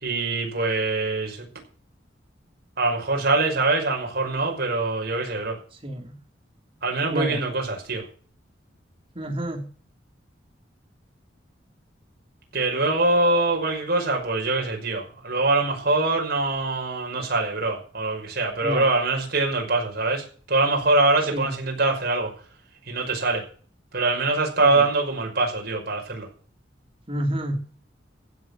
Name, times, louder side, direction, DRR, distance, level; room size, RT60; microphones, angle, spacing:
voice 1, 0.0-1.5 2.8-5.6 6.8-8.0 12.5-22.3 22.9-23.4 23.9-26.3, right 2 dB, 55° right, 1 dB, 5.6 m, -23 dB
voice 2, 5.7-6.2 7.1-7.4 9.1-9.7 18.6-18.9 21.2-21.5 24.6-24.9 27.1-27.6, right 1 dB, 30° right, 3 dB, 2.6 m, -29 dB
15.5 x 7.7 x 7.1 m, 0.43 s
head